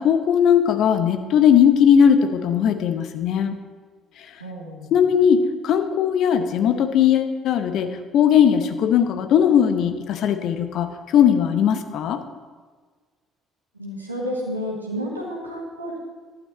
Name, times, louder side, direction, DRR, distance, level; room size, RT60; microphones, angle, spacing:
voice 1, 0.0-3.6 4.9-12.2, left 8 dB, 55° left, 8 dB, 0.8 m, -18 dB
voice 2, 4.4-4.9 13.8-16.0, equal, 85° right, -2 dB, 1.7 m, -30 dB
12.0 x 9.0 x 4.4 m, 1.5 s
figure-of-eight pair, 50°, 0 cm